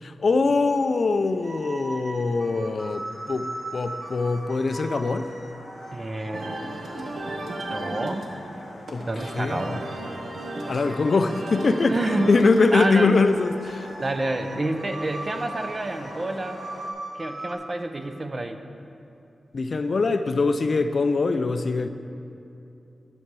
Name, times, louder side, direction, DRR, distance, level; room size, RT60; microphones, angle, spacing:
voice 1, 0.0-5.3 8.9-9.1 9.3-9.8 10.7-12.0 12.3-13.9 19.5-21.9, left 3 dB, 50° left, 10 dB, 0.4 m, -23 dB
sound 1, 0.8-16.9, left 3 dB, 85° left, 0.8 m, -46 dB
sound 2, 1.4-11.0 11.7-17.5, right 2 dB, 65° right, 1.2 m, -40 dB
voice 2, 5.9-6.6 7.7-8.3 9.1-9.8 11.9-12.3 12.7-13.1 14.0-16.6 17.1-18.6, right 2 dB, 30° right, 7 dB, 0.5 m, -28 dB
sound 3, 6.3-15.7, right 1 dB, 80° right, 1.0 m, -37 dB
10.0 x 7.0 x 4.7 m, 2.7 s
wide cardioid pair, 130°, 0 cm